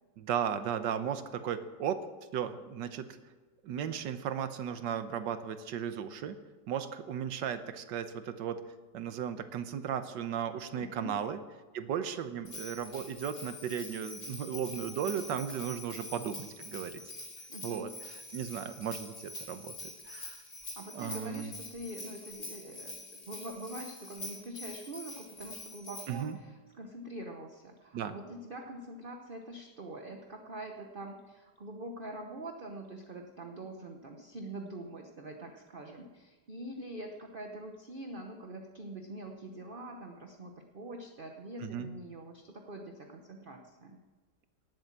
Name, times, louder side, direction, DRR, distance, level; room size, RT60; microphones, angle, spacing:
voice 1, 0.2-2.0 2.3-3.1 3.6-6.4 6.7-8.6 8.9-11.4 11.7-17.0 17.6-20.4 20.9-21.5 26.1-26.4 27.9-28.1 41.6-41.9, right 8 dB, 85° right, 10 dB, 1.5 m, -36 dB
voice 2, 10.7-11.1 17.5-17.9 20.8-23.0 23.3-44.0, right 1 dB, 35° right, 3 dB, 1.0 m, -44 dB
Bell, 12.4-26.3, left 2 dB, 55° left, 3.9 m, -45 dB
18.5 x 7.9 x 7.4 m, 1.3 s
omnidirectional pair, 1.9 m